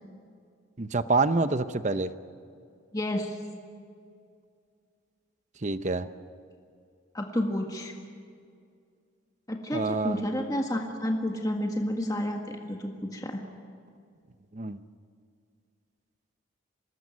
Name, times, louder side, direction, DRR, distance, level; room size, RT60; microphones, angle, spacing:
voice 1, 0.8-2.1 5.6-6.1 9.7-10.2 14.5-14.8, right 3 dB, 35° right, 11 dB, 0.8 m, -27 dB
voice 2, 2.9-3.4 7.1-7.9 9.5-13.4, left 1 dB, 20° left, 2 dB, 1.8 m, -30 dB
25.5 x 20.0 x 9.5 m, 2.3 s
head